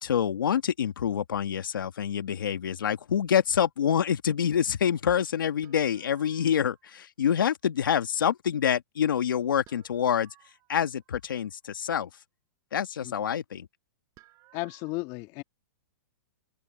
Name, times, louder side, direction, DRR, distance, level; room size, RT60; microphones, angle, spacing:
voice 1, 0.0-10.3 10.7-12.1 12.7-13.7, left 8 dB, 85° left, 1.7 m, -26 dB
sound 1, 5.6-7.0 9.7-11.6 14.2-14.9, right 19 dB, 30° right, 5.2 m, -60 dB
voice 2, 14.5-15.4, left 23 dB, 35° left, 1.9 m, -34 dB
open air
hypercardioid pair, 145°, 11 cm